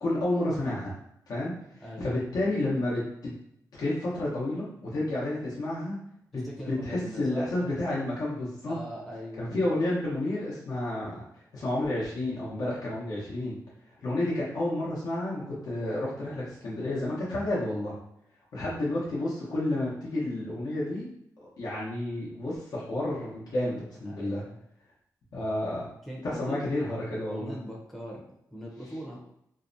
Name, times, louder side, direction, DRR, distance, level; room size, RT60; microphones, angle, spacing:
voice 1, 0.0-0.9 1.3-1.5 2.0-3.3 3.7-6.0 6.3-8.8 9.4-11.2 11.5-13.6 14.0-17.9 18.5-21.1 21.6-24.4 25.3-25.9 26.2-27.6, left 1 dB, 70° left, -7 dB, 0.8 m, -30 dB
voice 2, 1.8-2.2 6.3-7.5 8.6-9.6 24.1-24.6 26.0-26.7 27.3-29.2, equal, ahead, -3 dB, 0.6 m, -41 dB
2.7 x 2.1 x 2.5 m, 0.74 s
cardioid pair, 85°, 7 cm